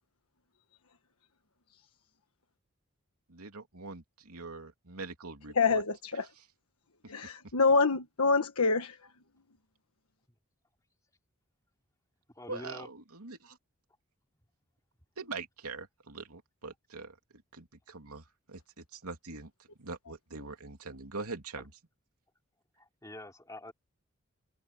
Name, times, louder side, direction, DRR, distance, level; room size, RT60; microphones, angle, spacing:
voice 1, 3.3-5.8 12.5-13.6 15.2-17.2 17.5-19.5 19.8-21.7, right 3 dB, 85° right, 3.1 m, -43 dB
voice 2, 5.5-6.3 7.1-9.0, left 4 dB, 80° left, 1.4 m, -26 dB
voice 3, 12.3-12.9 21.6-21.7 22.8-23.7, left 1 dB, 15° left, 3.0 m, -46 dB
head